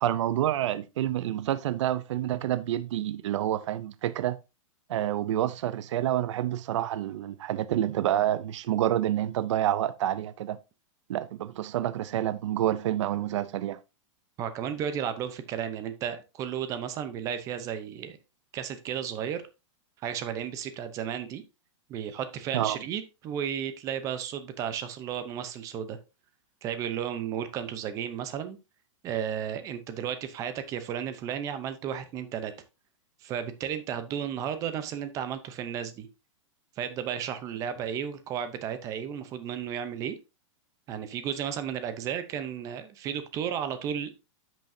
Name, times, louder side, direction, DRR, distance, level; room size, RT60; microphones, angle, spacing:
voice 1, 0.0-4.4 4.9-10.6 11.1-13.8 22.5-22.8, right 12 dB, 60° right, 0.5 m, -28 dB
voice 2, 14.4-18.2 18.5-19.4 20.0-21.4 21.9-26.0 26.6-28.6 29.0-32.5 33.2-36.1 36.8-40.2 40.9-44.1, right 8 dB, 20° right, 0.7 m, -33 dB
10.5 x 6.1 x 2.7 m
supercardioid pair, 170°, 17 cm